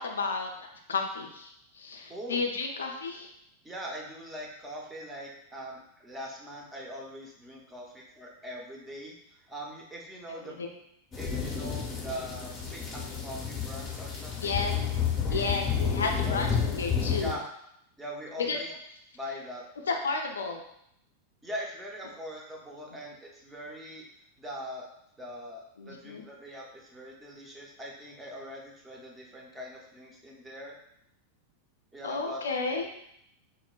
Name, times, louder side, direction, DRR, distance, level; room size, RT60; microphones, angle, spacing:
voice 1, 0.0-3.3 10.3-10.5 14.4-14.7 15.3-17.4 18.4-18.6 19.9-20.6 25.8-26.2 32.0-32.9, left 4 dB, 70° left, 3 dB, 0.3 m, -32 dB
voice 2, 2.1-2.4 3.6-10.6 11.2-14.6 15.3-15.4 15.7-15.8 16.1-16.5 17.2-17.4 18.0-18.7 19.1-19.6 21.4-24.1 24.4-24.9 25.2-30.8 31.9-32.4, equal, 10° right, -2 dB, 0.6 m, -42 dB
sound 1, 11.1-17.3, left 6 dB, 25° left, 0.7 m, -31 dB
4.0 x 2.1 x 2.3 m, 0.74 s
figure-of-eight pair, 90°, 0 cm